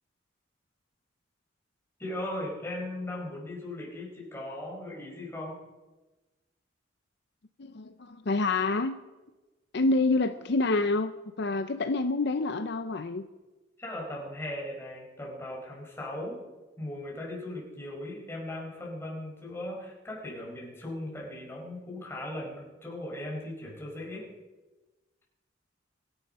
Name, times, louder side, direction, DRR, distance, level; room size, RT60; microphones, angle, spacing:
voice 1, 2.0-5.6 13.8-16.4 16.8-24.3, left 1 dB, 15° left, -3 dB, 4.6 m, -38 dB
voice 2, 7.6-9.0 9.7-11.1 11.4-13.3, left 3 dB, 60° left, 10 dB, 0.6 m, -27 dB
23.0 x 10.5 x 5.4 m, 1.2 s
head